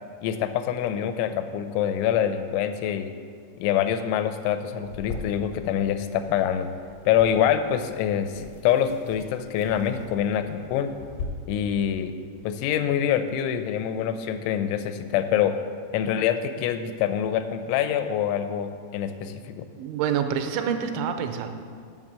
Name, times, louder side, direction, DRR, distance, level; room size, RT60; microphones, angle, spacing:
voice 1, 0.2-3.1 3.6-6.7 7.1-10.9 11.5-12.1 12.4-15.6 15.9-19.7, left 9 dB, 85° left, 9 dB, 2.8 m, -25 dB
sound 1, 4.8-11.3, left 4 dB, 65° left, 1.7 m, -42 dB
voice 2, 19.8-21.5, right 8 dB, 85° right, 7 dB, 3.0 m, -27 dB
7.3 x 6.5 x 7.4 m, 2.1 s
omnidirectional pair, 5.3 m